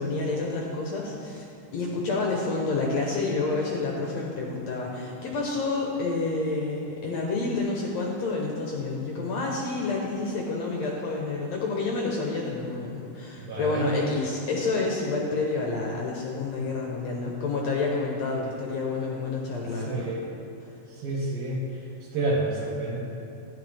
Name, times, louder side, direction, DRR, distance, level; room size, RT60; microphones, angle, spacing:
voice 1, 0.0-1.5 1.7-20.1 20.6-20.7, left 3 dB, 65° left, -1 dB, 1.8 m, -29 dB
voice 2, 13.4-13.9 19.8-20.3 20.9-21.6 22.1-23.0, right 2 dB, 60° right, -5 dB, 1.6 m, -29 dB
12.5 x 10.5 x 3.4 m, 2.9 s
omnidirectional pair, 4.0 m